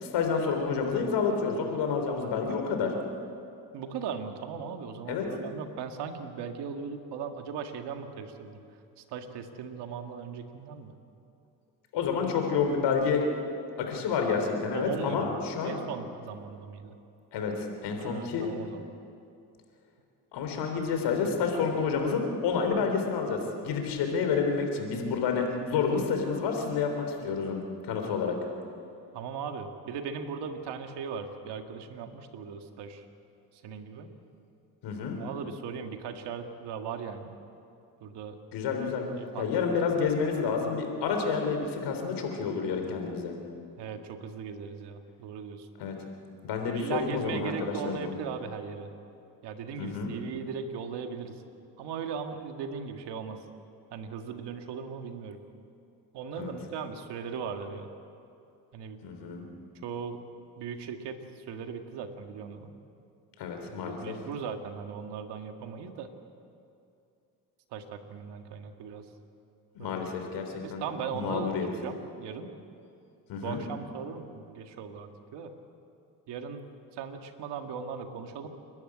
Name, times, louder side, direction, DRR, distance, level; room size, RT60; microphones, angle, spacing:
voice 1, 0.0-2.9 5.1-5.3 11.9-13.2 13.8-15.8 17.3-18.5 20.3-28.4 34.8-35.2 38.5-39.1 39.4-43.4 45.8-46.0 46.4-48.1 49.8-50.1 56.4-56.5 59.0-59.5 63.4-64.1 69.7-70.8 71.1-71.7 73.3-73.6, left 5 dB, 90° left, 4 dB, 3.7 m, -29 dB
voice 2, 3.7-8.6 9.0-11.0 14.7-15.3 15.6-17.0 18.0-18.8 29.1-33.0 33.5-34.1 35.2-37.3 38.0-38.4 39.2-39.5 43.8-45.7 46.7-48.9 49.4-51.4 51.8-53.5 53.9-55.4 56.1-57.9 58.7-59.0 59.8-60.2 60.6-62.7 63.7-66.1 67.7-69.1 69.8-70.0 70.6-72.5 73.4-75.5 76.3-78.5, right 6 dB, 85° right, 6 dB, 2.0 m, -38 dB
29.0 x 12.0 x 9.8 m, 2.6 s
cardioid pair, 80°, 40 cm